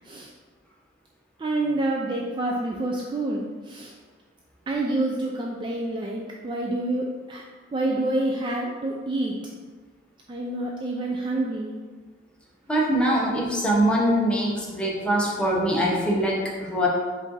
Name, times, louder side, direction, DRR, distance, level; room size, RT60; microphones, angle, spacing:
voice 1, 1.4-3.9 4.7-7.4 7.7-9.4 10.3-11.7, right 2 dB, 25° right, -1 dB, 0.3 m, -27 dB
voice 2, 12.7-16.9, equal, 5° left, -4 dB, 0.8 m, -23 dB
5.1 x 2.6 x 3.9 m, 1.5 s
head